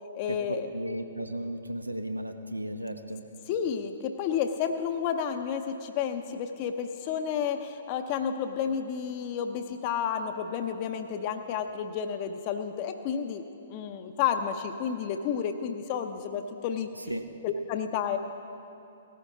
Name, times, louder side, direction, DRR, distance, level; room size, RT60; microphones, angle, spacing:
voice 1, 0.1-0.7 3.5-13.4 13.7-16.9 17.4-18.2, left 7 dB, 35° left, 7 dB, 0.7 m, -31 dB
voice 2, 0.7-3.3 17.0-17.3, right 1 dB, 85° right, 7 dB, 0.9 m, -35 dB
18.0 x 14.0 x 3.7 m, 2.7 s
figure-of-eight pair, 120°, 0 cm